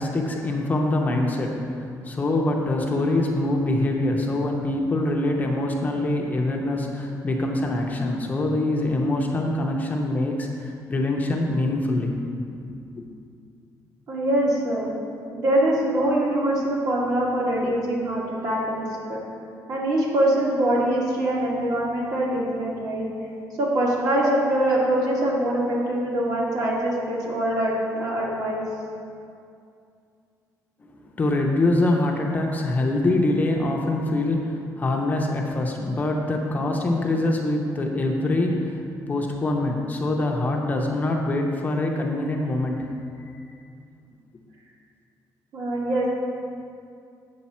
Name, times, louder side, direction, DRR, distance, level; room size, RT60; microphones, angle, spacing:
voice 1, 0.0-12.2 12.7-13.1 30.9-42.9 43.2-43.4, left 2 dB, 25° left, 1 dB, 0.6 m, -24 dB
voice 2, 14.1-14.9 15.3-19.2 19.7-23.1 23.6-28.6 45.5-46.1, right 1 dB, 55° right, -4 dB, 1.9 m, -23 dB
8.2 x 6.6 x 4.3 m, 2.4 s
cardioid pair, 170°, 7 cm